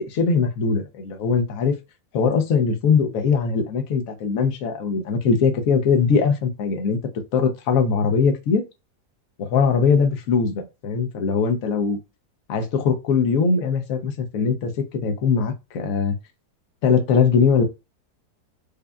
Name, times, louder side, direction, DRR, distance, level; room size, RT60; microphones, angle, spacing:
voice 1, 0.0-1.7 2.1-7.0 7.3-8.6 9.5-12.0 12.5-16.1 16.8-17.6, left 5 dB, 65° left, 1.0 m, -21 dB
5.1 x 2.3 x 2.2 m
omnidirectional pair, 1.7 m